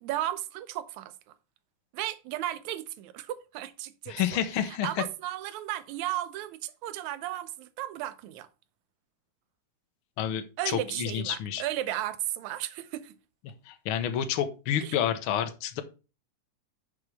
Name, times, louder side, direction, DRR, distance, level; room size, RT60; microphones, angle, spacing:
voice 1, 0.0-1.1 1.9-4.2 4.6-8.5 10.6-13.2 14.8-15.0, right 13 dB, 80° right, 2.1 m, -34 dB
voice 2, 4.1-5.0 10.2-11.6 13.7-15.8, left 9 dB, 60° left, 1.5 m, -29 dB
10.0 x 6.1 x 3.4 m
omnidirectional pair, 3.3 m